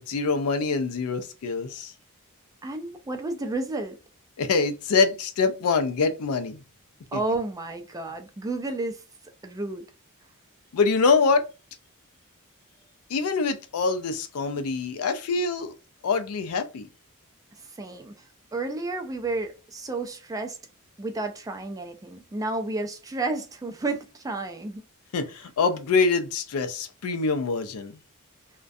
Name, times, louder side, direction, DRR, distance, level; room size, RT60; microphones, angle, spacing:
voice 1, 0.0-1.9 4.4-6.6 10.7-11.5 13.1-15.7 16.0-16.9 25.1-28.0, left 4 dB, 75° left, 0.4 m, -25 dB
voice 2, 2.6-4.0 7.1-9.0 9.4-9.8 17.6-20.6 21.0-24.8, right 2 dB, 15° right, 0.3 m, -31 dB
2.4 x 2.1 x 2.5 m
head